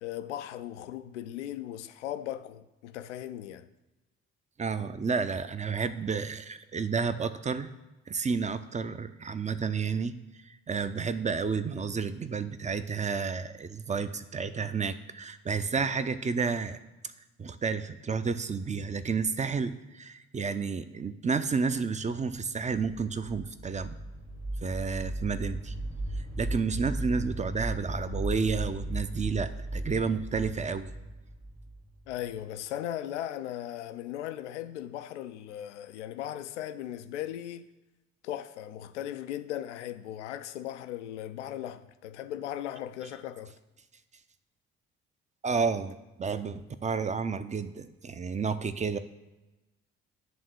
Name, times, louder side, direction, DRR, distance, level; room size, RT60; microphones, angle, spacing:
voice 1, 0.0-3.7 32.1-37.7 38.2-43.5, left 11 dB, 80° left, 0.5 m, -38 dB
voice 2, 4.6-7.7 8.1-10.1 10.4-16.8 17.4-24.0 24.6-25.7 26.4-30.9 45.4-49.0, right 5 dB, 20° right, 0.6 m, -31 dB
sound 1, 23.2-32.4, right 1 dB, 45° right, 2.0 m, -36 dB
10.5 x 3.6 x 6.5 m
figure-of-eight pair, 45°, 35 cm